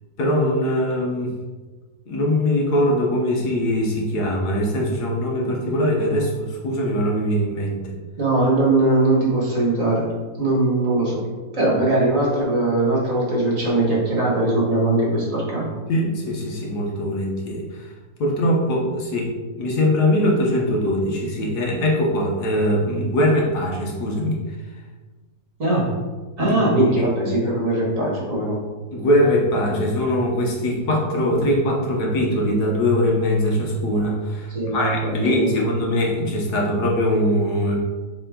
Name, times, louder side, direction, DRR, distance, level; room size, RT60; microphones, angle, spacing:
voice 1, 0.2-1.4 2.1-8.0 15.9-17.9 18.2-24.4 26.4-27.1 28.9-37.8, left 1 dB, 65° left, -1 dB, 1.5 m, -22 dB
voice 2, 8.2-10.1 10.4-11.2 11.5-15.7 25.6-26.0 26.4-28.6 34.5-35.6, right 2 dB, 50° right, -3 dB, 1.8 m, -20 dB
6.8 x 3.7 x 3.8 m, 1.3 s
omnidirectional pair, 1.9 m